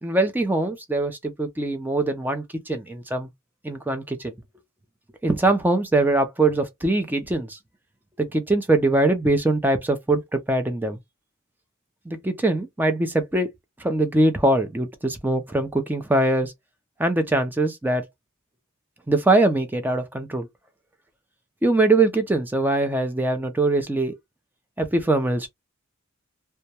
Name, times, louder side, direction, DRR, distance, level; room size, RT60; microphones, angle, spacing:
voice 1, 0.0-3.3 3.6-4.3 5.2-7.6 8.2-11.0 12.1-13.5 13.8-16.5 17.0-18.1 19.1-20.5 21.6-24.2 24.8-25.5, right 2 dB, 10° right, 0.4 m, -22 dB
2.2 x 2.1 x 2.7 m
head